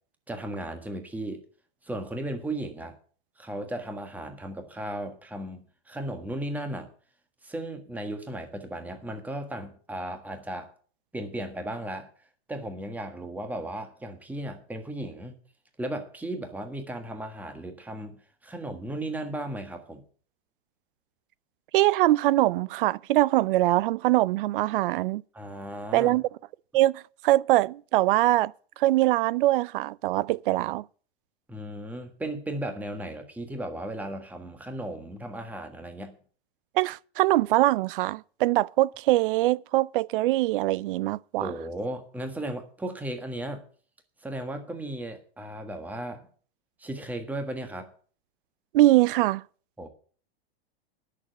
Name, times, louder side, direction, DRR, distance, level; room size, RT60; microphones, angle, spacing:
voice 1, 0.3-1.4 1.8-3.0 3.4-6.9 7.4-10.7 11.1-12.1 12.5-15.4 15.8-20.0 25.3-26.1 31.5-36.2 41.4-43.6 44.2-46.3 46.8-47.9 49.8-49.9, right 1 dB, 5° right, 1.5 m, -35 dB
voice 2, 21.7-25.2 25.9-26.2 26.7-28.5 28.8-30.8 36.8-41.5 48.7-49.4, right 16 dB, 60° right, 0.5 m, -23 dB
10.5 x 6.7 x 8.1 m
supercardioid pair, 140°, 30 cm